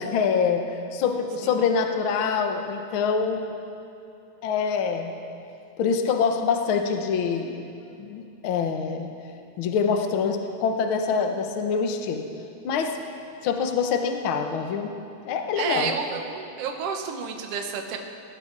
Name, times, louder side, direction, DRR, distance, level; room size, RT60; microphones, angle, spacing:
voice 1, 0.0-3.5 4.4-5.1 5.8-7.6 8.0-9.1 9.6-12.3 12.6-13.0 13.4-14.9 15.2-15.9, left 6 dB, 65° left, 5 dB, 1.3 m, -25 dB
voice 2, 15.6-18.0, right 6 dB, 60° right, 4 dB, 1.8 m, -30 dB
19.0 x 18.0 x 4.0 m, 2.7 s
omnidirectional pair, 3.7 m